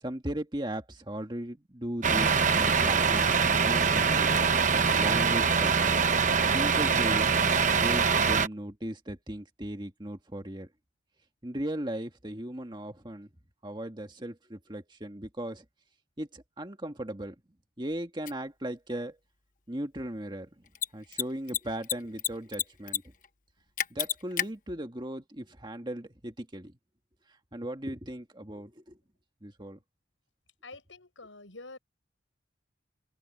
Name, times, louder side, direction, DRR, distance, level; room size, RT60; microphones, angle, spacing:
voice 1, 0.0-3.3 3.6-4.3 4.9-6.0 6.5-7.3 7.8-10.7 11.4-13.3 13.6-15.6 16.2-17.3 17.8-19.2 19.7-20.5 20.9-23.0 23.9-26.7 27.5-29.0 29.4-29.8, right 1 dB, 25° right, 1.8 m, -37 dB
Truck, 2.0-8.5, right 5 dB, 40° right, 1.0 m, -24 dB
Mechanisms, 18.3-18.4 20.7-20.9 21.1-21.2 21.5-22.3 22.5-23.0 23.2-23.3 23.8-24.5, left 10 dB, 45° left, 1.1 m, -29 dB
voice 2, 30.6-31.8, left 3 dB, 90° left, 7.2 m, -47 dB
open air
head